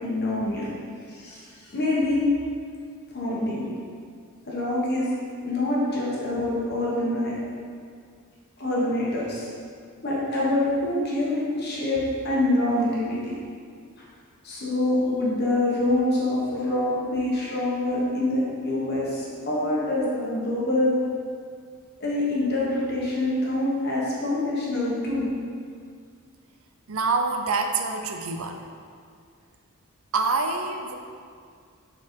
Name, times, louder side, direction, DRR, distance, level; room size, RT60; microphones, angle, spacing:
voice 1, 0.0-0.7 1.1-1.4 1.7-2.3 3.1-3.7 4.4-5.1 5.4-7.3 8.6-9.5 10.0-13.3 14.4-20.9 22.0-25.3, left 1 dB, 45° left, -6 dB, 1.3 m, -25 dB
voice 2, 26.9-28.6 30.1-30.9, right 4 dB, 70° right, 5 dB, 0.6 m, -26 dB
7.4 x 4.1 x 4.6 m, 2.2 s
head